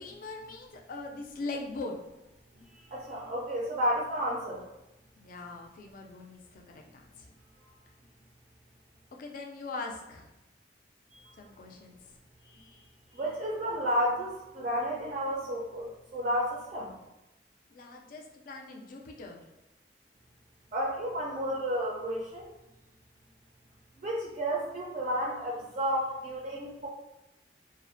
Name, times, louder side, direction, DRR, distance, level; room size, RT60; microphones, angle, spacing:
voice 1, 0.0-2.0 5.2-7.0 9.2-10.3 11.4-12.0 17.7-19.4, left 3 dB, 50° left, 2 dB, 0.3 m, -41 dB
voice 2, 2.5-4.6 7.6-7.7 11.2-11.5 12.4-12.8 13.1-16.9 20.7-22.5 24.0-26.9, equal, 40° right, -4 dB, 0.4 m, -32 dB
2.4 x 2.0 x 2.5 m, 0.95 s
head